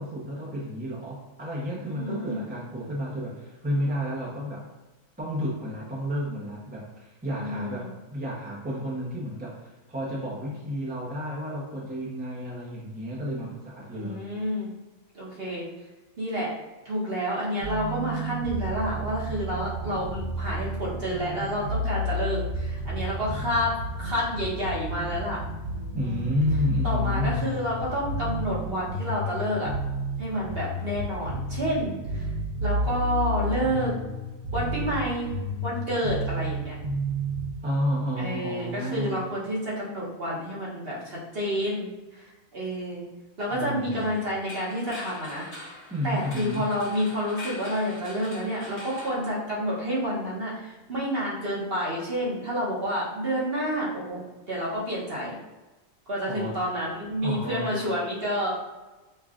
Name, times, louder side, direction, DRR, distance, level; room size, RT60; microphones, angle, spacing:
voice 1, 0.0-4.6 5.2-14.2 25.9-27.4 37.6-39.2 43.5-44.2 45.9-46.7 56.3-56.6 57.2-57.8, equal, 10° right, -5 dB, 0.6 m, -31 dB
voice 2, 1.9-2.5 7.4-7.9 13.9-14.7 15.1-15.7 16.2-16.5 16.8-25.4 26.0-26.4 26.8-29.7 30.2-32.3 32.6-33.9 34.5-35.3 35.6-36.7 38.2-43.0 43.4-45.5 46.0-54.2 54.5-55.4 56.1-58.5, equal, 45° right, -6 dB, 1.2 m, -29 dB
sound 1, 17.6-37.5, equal, 85° right, 1.3 m, -31 dB
sound 2, 44.0-49.9, left 2 dB, 45° left, 1.3 m, -44 dB
5.6 x 2.4 x 2.4 m, 1.1 s
omnidirectional pair, 1.5 m